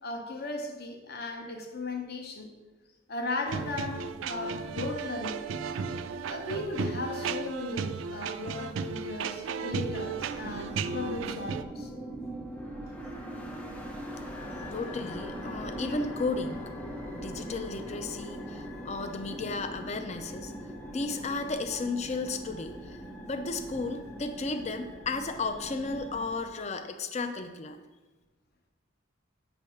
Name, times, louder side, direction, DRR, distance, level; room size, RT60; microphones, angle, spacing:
voice 1, 0.0-2.5 3.1-5.5 6.2-11.9, left 2 dB, 50° left, 0.9 m, -36 dB
sound 1, 3.5-11.6, right 5 dB, 65° right, 0.3 m, -35 dB
sound 2, 9.7-26.4, equal, 5° left, 0.8 m, -41 dB
voice 2, 14.7-16.7 17.1-20.5 20.9-23.0 23.2-27.8, left 3 dB, 35° left, 0.5 m, -34 dB
8.2 x 3.4 x 5.7 m
head